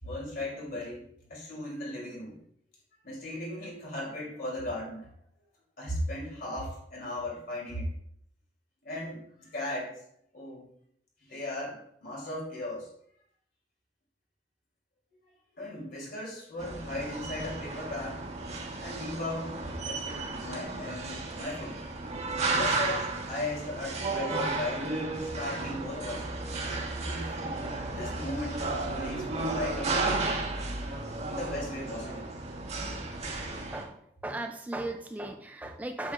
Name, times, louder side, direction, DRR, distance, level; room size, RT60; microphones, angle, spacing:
voice 1, 0.0-2.4 3.0-5.1 5.8-7.9 8.8-10.0 10.3-10.7 11.2-12.9 15.6-18.3 18.8-21.8 22.5-24.9 25.2-26.3 27.0-27.6 27.9-30.4 31.2-32.3, left 1 dB, 55° left, -3 dB, 3.0 m, -37 dB
sound 1, 16.6-33.8, right 3 dB, 40° right, 1.2 m, -33 dB
voice 2, 33.7-36.1, right 2 dB, 10° right, 5 dB, 0.3 m, -37 dB
8.1 x 7.2 x 2.4 m, 0.67 s
head